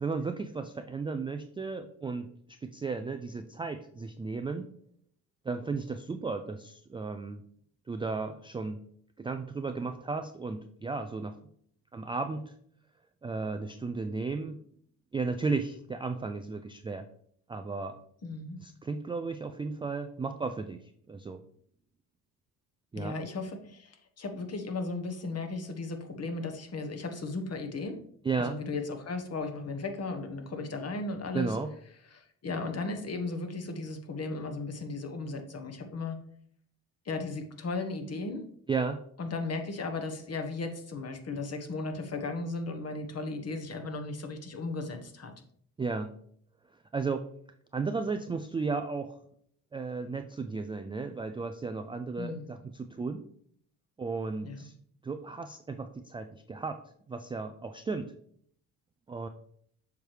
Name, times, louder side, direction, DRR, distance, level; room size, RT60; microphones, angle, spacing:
voice 1, 0.0-4.6 5.5-7.4 7.9-8.8 9.2-11.4 11.9-12.5 13.2-14.6 15.1-17.0 17.5-18.0 18.6-20.8 21.1-21.4 22.9-23.2 28.2-28.6 31.3-31.7 38.7-39.0 45.8-46.1 46.9-47.2 47.7-49.1 49.7-53.2 54.0-54.7 55.0-56.8 57.1-58.1 59.1-59.3, right 4 dB, 15° right, 7 dB, 0.3 m, -34 dB
voice 2, 18.2-18.6 22.9-28.0 28.4-31.6 32.1-36.2 37.0-38.4 39.2-45.3 52.2-52.5 54.4-54.7, left 3 dB, 35° left, 6 dB, 1.2 m, -36 dB
7.1 x 4.6 x 3.3 m, 0.64 s
hypercardioid pair, 65°, 44 cm